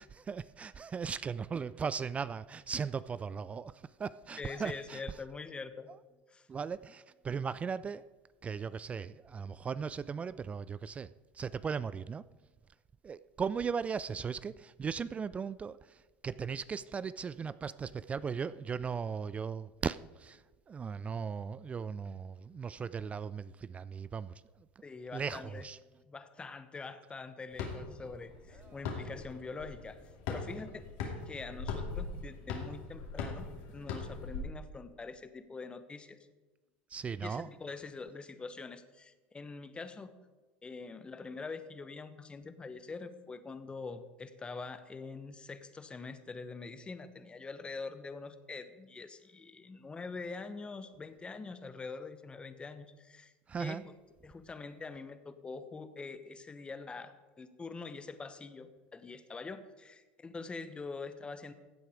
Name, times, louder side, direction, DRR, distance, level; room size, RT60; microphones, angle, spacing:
voice 1, 0.0-3.7 4.0-5.0 6.5-8.0 8.4-11.1 11.4-12.2 13.0-15.8 16.2-20.4 20.7-24.3 25.1-25.8 36.9-37.5 53.5-53.8, right 6 dB, 25° right, 17 dB, 0.3 m, -37 dB
voice 2, 4.4-5.9 6.3-6.5 24.8-25.7 26.1-30.0 30.3-30.8 31.3-36.2 37.2-40.1 40.6-53.3 53.6-54.0 54.2-61.5, left 4 dB, 20° left, 10 dB, 1.0 m, -44 dB
sound 1, 27.5-34.4, left 5 dB, 70° left, 2.5 m, -40 dB
15.5 x 7.9 x 4.9 m, 1.2 s
hypercardioid pair, 95°, 5 cm